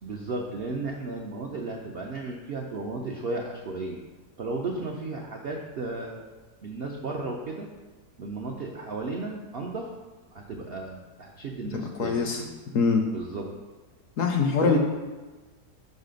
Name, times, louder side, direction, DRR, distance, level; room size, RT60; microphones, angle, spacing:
voice 1, 0.0-4.0 4.4-6.3 6.6-7.7 8.2-9.9 10.3-12.5 13.1-13.5 14.6-14.8, right 3 dB, 75° right, 0 dB, 0.5 m, -34 dB
voice 2, 12.0-12.4 12.7-13.0 14.2-14.8, left 5 dB, 70° left, 3 dB, 0.8 m, -23 dB
5.5 x 4.1 x 5.1 m, 1.3 s
omnidirectional pair, 1.8 m